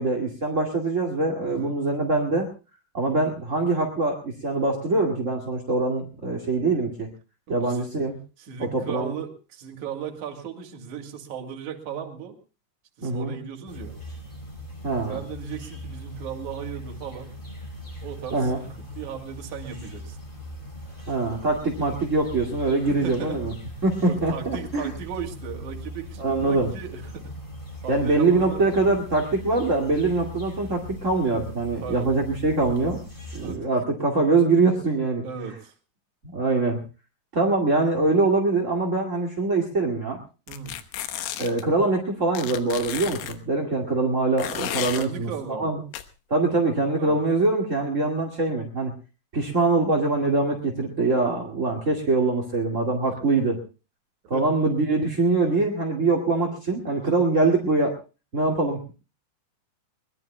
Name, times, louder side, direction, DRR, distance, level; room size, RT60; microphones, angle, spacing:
voice 1, 0.0-2.5 2.9-7.1 7.5-8.2 8.6-9.1 13.0-13.3 14.8-15.2 18.3-18.6 21.1-23.5 23.8-24.9 26.2-26.7 27.9-33.0 33.3-35.2 36.2-36.8 37.3-40.2 41.4-45.8 46.3-48.9 49.3-53.6 54.3-57.9 58.3-58.9, right 3 dB, 30° right, 0 dB, 1.6 m, -23 dB
voice 2, 1.5-1.8 7.5-7.9 8.4-12.4 13.0-14.0 15.1-17.4 18.0-20.2 22.8-23.4 24.1-27.4 27.8-28.6 31.8-32.1 33.4-33.7 35.2-35.7 40.5-40.8 44.5-44.6 44.9-45.7 47.0-47.2 53.1-53.2 54.3-54.5, right 7 dB, 50° right, 3 dB, 3.5 m, -36 dB
sound 1, 13.7-33.6, equal, 10° left, 3.9 m, -40 dB
sound 2, 40.5-41.6 42.4-43.4 44.4-45.1 45.9-46.0, left 12 dB, 80° left, 3.2 m, -33 dB
22.0 x 21.0 x 2.2 m, 0.34 s
omnidirectional pair, 4.7 m